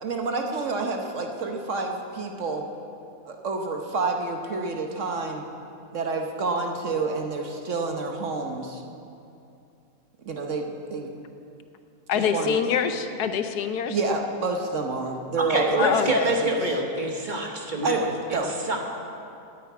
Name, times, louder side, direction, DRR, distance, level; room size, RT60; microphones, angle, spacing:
voice 1, 0.0-2.7 3.2-5.4 5.9-8.8 10.2-11.1 12.1-12.6 13.9-16.6 17.8-18.5, right 3 dB, 55° right, 3 dB, 1.2 m, -29 dB
voice 2, 12.1-14.0 15.8-16.3, left 7 dB, 80° left, 9 dB, 1.2 m, -25 dB
voice 3, 15.4-18.0 18.7-18.9, right 1 dB, 35° right, 1 dB, 1.2 m, -25 dB
9.2 x 8.6 x 9.3 m, 2.6 s
omnidirectional pair, 1.7 m